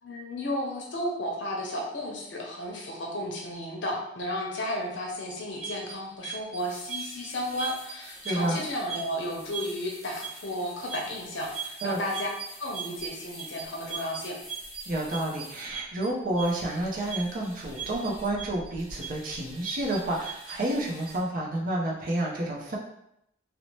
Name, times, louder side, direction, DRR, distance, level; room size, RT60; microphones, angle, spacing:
voice 1, 0.0-12.3 12.6-14.4, left 1 dB, 70° left, -1 dB, 0.7 m, -33 dB
sound 1, 5.3-21.2, right 5 dB, ahead, 0.9 m, -41 dB
voice 2, 8.2-8.6 11.8-12.0 14.9-22.8, right 1 dB, 45° right, -2 dB, 0.5 m, -30 dB
2.7 x 2.0 x 3.0 m, 0.77 s
head